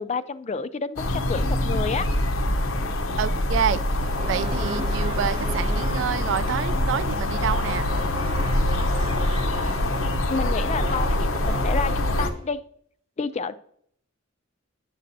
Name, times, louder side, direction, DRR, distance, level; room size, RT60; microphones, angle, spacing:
voice 1, 0.0-2.1 10.3-12.6 13.2-13.5, left 4 dB, 35° left, 13 dB, 0.3 m, -29 dB
sound 1, 1.0-12.3, left 1 dB, 85° left, 0.8 m, -24 dB
voice 2, 3.2-3.8 4.3-7.9, right 8 dB, 65° right, 16 dB, 0.3 m, -27 dB
sound 2, 3.8-12.5, right 2 dB, 25° right, 0.7 m, -37 dB
9.5 x 7.4 x 2.6 m, 0.66 s
head